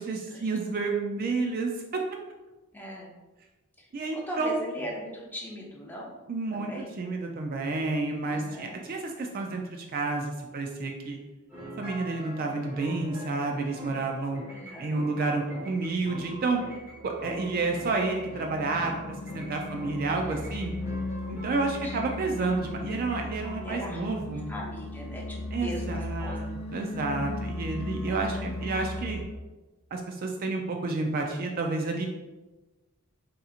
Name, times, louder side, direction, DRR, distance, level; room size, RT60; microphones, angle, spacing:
voice 1, 0.0-1.7 3.9-4.6 6.3-6.7 7.0-11.2 11.8-14.4 14.8-16.6 17.0-20.7 21.3-24.5 25.5-29.2 29.9-32.1, right 3 dB, 40° right, 2 dB, 0.3 m, -30 dB
voice 2, 2.7-3.1 3.8-6.1 6.5-6.9 8.3-8.8 14.5-15.0 20.2-20.7 21.0-22.0 23.6-26.4 26.7-26.9 28.0-28.6, equal, 10° left, -3 dB, 0.5 m, -41 dB
sound 1, 11.5-23.9, equal, 10° right, 0.9 m, -44 dB
sound 2, 16.1-29.2, left 2 dB, 70° left, 0.7 m, -37 dB
3.7 x 2.8 x 2.4 m, 1.1 s
head